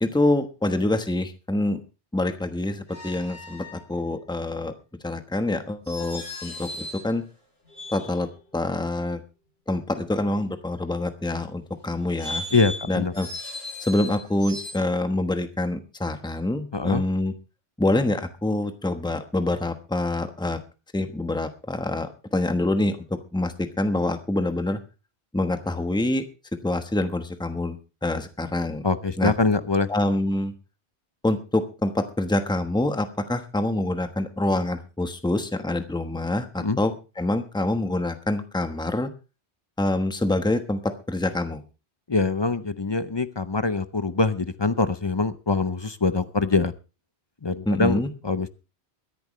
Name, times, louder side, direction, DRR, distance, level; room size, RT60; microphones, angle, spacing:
voice 1, 0.0-1.8 2.1-4.7 5.0-7.2 7.9-8.3 8.5-9.2 9.7-12.5 12.9-13.3 13.8-17.3 17.8-20.6 20.9-24.8 25.3-26.2 26.6-27.8 28.0-28.8 29.2-29.3 29.9-30.5 31.2-39.1 39.8-41.6 47.7-48.1, left 2 dB, 5° left, 8 dB, 1.1 m, -26 dB
sound 1, 2.9-3.8 5.9-7.1 7.7-8.4 12.0-14.7, left 2 dB, 65° left, 7.9 m, -36 dB
voice 2, 12.5-13.1 16.7-17.0 28.8-29.9 36.6-36.8 42.1-46.7 47.4-48.5, left 3 dB, 30° left, 13 dB, 0.6 m, -24 dB
22.5 x 10.5 x 3.1 m, 0.31 s
omnidirectional pair, 1.1 m